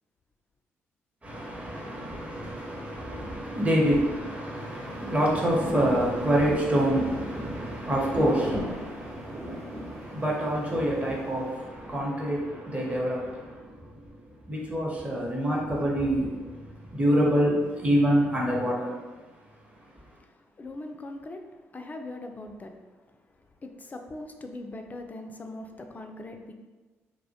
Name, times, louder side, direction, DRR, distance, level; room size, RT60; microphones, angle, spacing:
voice 1, 1.2-14.0 14.5-16.6 16.9-18.9, equal, 20° right, -3 dB, 0.8 m, -27 dB
Rain, 4.6-11.8, equal, 55° right, 0.8 m, -37 dB
voice 2, 20.6-21.4 21.7-22.7 23.6-26.5, left 2 dB, 25° left, 5 dB, 0.3 m, -40 dB
2.1 x 2.0 x 2.8 m, 1.3 s
hypercardioid pair, 45°, 7 cm